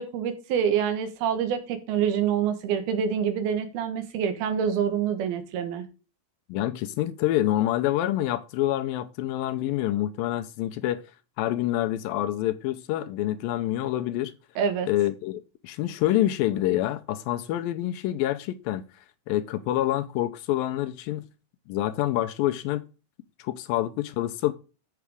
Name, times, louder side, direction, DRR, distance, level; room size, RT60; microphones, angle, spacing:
voice 1, 0.0-5.9 14.6-14.9, right 8 dB, 80° right, 3.2 m, -26 dB
voice 2, 6.5-11.0 11.4-14.3 14.9-18.8 19.3-21.2 21.7-22.8 23.4-24.5, left 14 dB, 80° left, 2.2 m, -27 dB
8.3 x 5.9 x 4.9 m
omnidirectional pair, 4.4 m